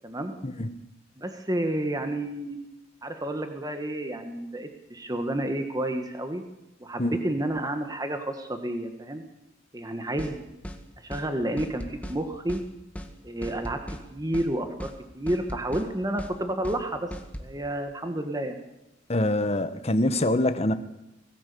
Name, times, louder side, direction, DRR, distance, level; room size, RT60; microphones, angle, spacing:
voice 1, 0.4-0.7 7.0-7.2 19.1-20.7, left 1 dB, 35° left, 11 dB, 1.3 m, -25 dB
voice 2, 1.2-2.6 3.0-6.4 6.8-9.2 9.7-10.4 11.0-12.6 13.2-17.1 17.4-18.6, right 1 dB, 20° right, 6 dB, 1.5 m, -30 dB
sound 1, 10.2-10.3 10.6-10.8 11.1-11.3 11.6-12.2 12.5-12.6 12.9-13.1 13.4-14.0 14.3-14.5 14.8-15.0 15.3-15.9 16.2-16.3 16.6-16.8 17.1-17.5, equal, 10° left, 1.9 m, -37 dB
25.0 x 18.5 x 6.9 m, 0.93 s
head